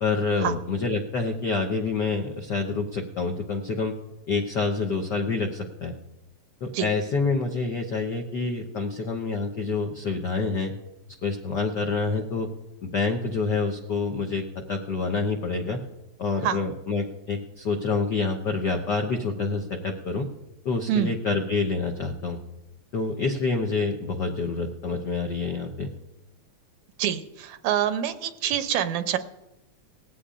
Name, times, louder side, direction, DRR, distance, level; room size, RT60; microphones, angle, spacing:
voice 1, 0.0-3.9 4.3-5.9 6.6-10.7 11.2-12.5 12.8-15.8 16.2-20.3 20.6-22.4 22.9-25.9, left 4 dB, 70° left, 2 dB, 1.0 m, -27 dB
voice 2, 27.0-29.2, right 10 dB, 80° right, 9 dB, 2.0 m, -26 dB
19.0 x 15.0 x 2.5 m, 0.94 s
omnidirectional pair, 3.4 m